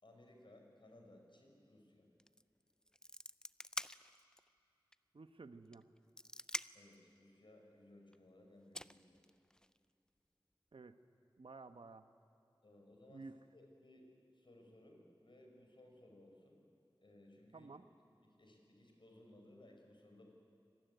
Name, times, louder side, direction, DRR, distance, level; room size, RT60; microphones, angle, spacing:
voice 1, 0.0-2.1 6.7-9.2 12.6-13.3 13.5-14.1 14.3-16.6 17.0-17.7 18.2-20.3, left 1 dB, 65° left, 2 dB, 5.2 m, -62 dB
sound 1, 2.2-2.4 2.7-4.5 4.9-5.0 5.7-7.0 8.1-8.2 8.7-9.8, left 1 dB, 10° left, 0.5 m, -46 dB
voice 2, 5.1-5.9 10.7-11.0 11.4-12.1 13.1-13.4 17.5-17.8, right 3 dB, 85° right, 9 dB, 1.1 m, -53 dB
26.0 x 20.0 x 9.3 m, 2.7 s
wide cardioid pair, 65°, 9 cm